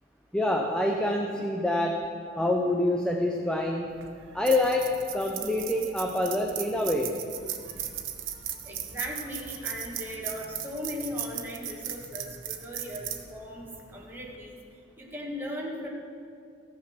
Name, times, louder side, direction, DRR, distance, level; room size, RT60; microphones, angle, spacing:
voice 1, 0.3-2.1 2.4-4.0 4.3-7.2, left 1 dB, 5° left, 1 dB, 0.5 m, -26 dB
sound 1, 3.9-14.4, right 10 dB, 90° right, 0.9 m, -38 dB
voice 2, 8.6-14.6 15.0-15.9, left 1 dB, 10° right, -3 dB, 1.7 m, -38 dB
14.0 x 6.2 x 5.9 m, 2.4 s
head